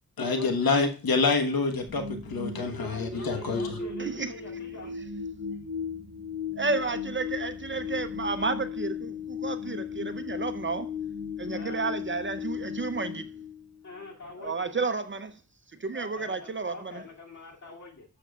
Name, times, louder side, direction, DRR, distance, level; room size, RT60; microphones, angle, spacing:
voice 1, 0.2-3.8, left 4 dB, 75° left, 1.3 m, -27 dB
sound 1, 1.9-14.0, left 6 dB, 5° right, 3.9 m, -36 dB
voice 2, 2.8-4.9 11.5-11.9 13.8-14.7 15.9-18.0, left 3 dB, 50° left, 2.5 m, -44 dB
voice 3, 4.0-4.3 6.6-10.9 11.4-13.3 14.4-15.4 15.8-17.0, right 4 dB, 35° right, 0.6 m, -31 dB
11.5 x 7.1 x 2.3 m
wide cardioid pair, 135°, 36 cm